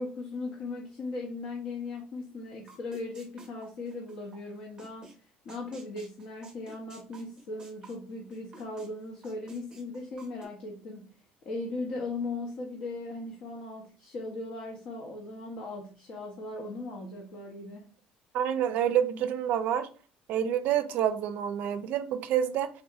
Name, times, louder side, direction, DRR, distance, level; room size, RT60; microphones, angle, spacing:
voice 1, 0.0-17.9, left 2 dB, 45° left, 0 dB, 0.6 m, -38 dB
sound 1, 2.7-4.4 4.8-5.1 5.5-8.9 9.2-10.5, right 3 dB, 20° right, 0.7 m, -52 dB
voice 2, 18.3-19.9 20.3-22.7, right 9 dB, 55° right, 10 dB, 0.4 m, -28 dB
3.5 x 2.6 x 2.3 m, 0.38 s
cardioid pair, 165°, 3 cm